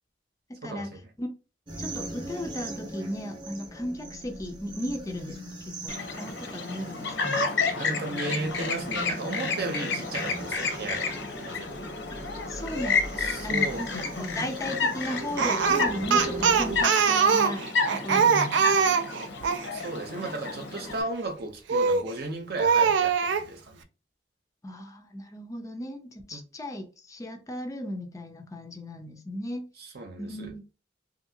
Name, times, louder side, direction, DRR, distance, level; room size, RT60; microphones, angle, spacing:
voice 1, 0.6-1.0 7.8-11.2 11.4-11.7 12.3-12.5 13.2-13.9 18.1-18.3 19.7-23.8 26.3-26.4 29.8-30.5, right 2 dB, 60° right, 0.7 m, -35 dB
sound 1, 1.7-16.8, right 1 dB, 25° right, 0.8 m, -40 dB
voice 2, 1.8-5.4 5.8-7.5 12.5-18.6 18.8-19.0 24.6-29.7 30.2-30.6, equal, 20° left, 0.4 m, -36 dB
Chirp tweet, 5.9-21.0, left 4 dB, 85° left, 0.7 m, -31 dB
Speech, 15.4-19.7 21.7-22.1 22.6-23.5, right 5 dB, 85° right, 0.4 m, -22 dB
2.8 x 2.6 x 2.7 m
head